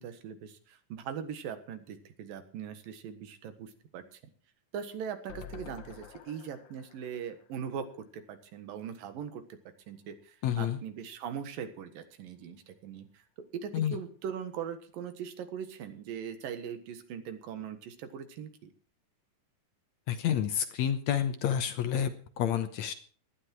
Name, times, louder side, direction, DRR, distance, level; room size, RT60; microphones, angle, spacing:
voice 1, 0.0-4.2 4.7-7.9 8.1-9.4 9.9-13.2 13.5-18.7, right 8 dB, 85° right, 9 dB, 3.3 m, -40 dB
sound 1, 5.3-8.5 8.9-9.0 9.2-9.3, left 9 dB, 90° left, 1.0 m, -50 dB
voice 2, 10.4-10.8 13.7-14.0 20.1-22.9, left 9 dB, 70° left, 10 dB, 2.0 m, -29 dB
18.0 x 12.0 x 4.6 m, 0.41 s
omnidirectional pair, 3.9 m